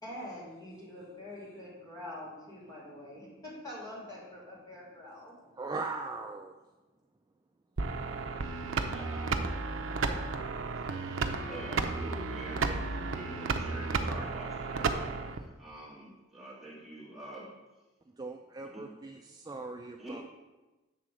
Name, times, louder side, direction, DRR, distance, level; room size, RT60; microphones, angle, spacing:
voice 1, 0.0-5.3, left 1 dB, 20° left, -6 dB, 2.6 m, -45 dB
voice 2, 5.5-6.6 18.2-20.2, right 3 dB, 20° right, 2 dB, 0.3 m, -39 dB
sound 1, 7.8-15.4, right 4 dB, 75° right, 0.6 m, -33 dB
voice 3, 8.7-17.6 18.6-18.9 20.0-20.2, right 1 dB, ahead, -7 dB, 2.0 m, -46 dB
8.4 x 3.7 x 6.2 m, 1.1 s
head